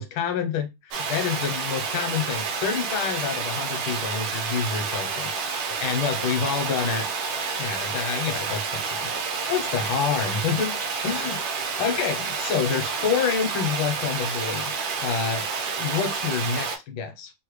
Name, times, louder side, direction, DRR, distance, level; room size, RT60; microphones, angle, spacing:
voice 1, 0.0-7.1 7.6-9.1 9.5-10.8 11.0-11.4 11.8-14.7 15.0-15.5 15.8-17.3, left 6 dB, 85° left, 1.6 m, -28 dB
Water, 0.9-16.8, right 5 dB, 75° right, 1.4 m, -29 dB
3.7 x 2.1 x 3.0 m
omnidirectional pair, 2.2 m